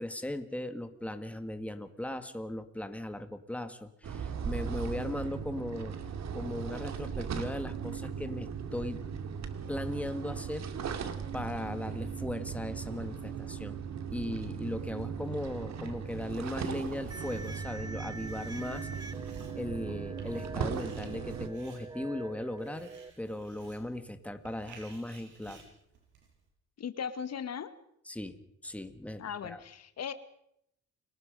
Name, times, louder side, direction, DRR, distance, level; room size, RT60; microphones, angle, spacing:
voice 1, 0.0-6.0 6.3-9.0 9.7-10.7 11.3-13.8 14.1-18.9 19.5-22.9 23.2-25.6 28.1-28.3 28.6-29.6, left 1 dB, 5° left, 9 dB, 2.0 m, -38 dB
sound 1, 4.0-21.5, right 7 dB, 60° right, 2.3 m, -38 dB
Writing, 16.3-26.5, right 5 dB, 80° right, 7.6 m, -57 dB
sound 2, 17.1-23.1, right 3 dB, 15° right, 0.9 m, -45 dB
voice 2, 26.8-27.7 29.2-30.1, left 7 dB, 55° left, 12 dB, 1.4 m, -37 dB
30.0 x 19.5 x 5.3 m, 0.73 s
cardioid pair, 90°, 30 cm